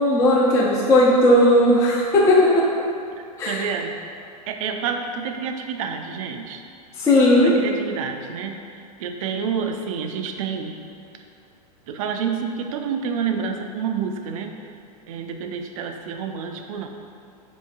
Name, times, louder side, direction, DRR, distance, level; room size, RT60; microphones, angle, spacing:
voice 1, 0.0-2.7 3.4-3.6 7.0-7.6, left 1 dB, 15° left, -5 dB, 0.4 m, -16 dB
voice 2, 3.2-4.0 4.5-6.6 7.4-10.8 11.9-14.6 15.1-16.9, right 6 dB, 55° right, 5 dB, 0.4 m, -29 dB
4.3 x 3.0 x 2.3 m, 2.5 s
hypercardioid pair, 105°, 21 cm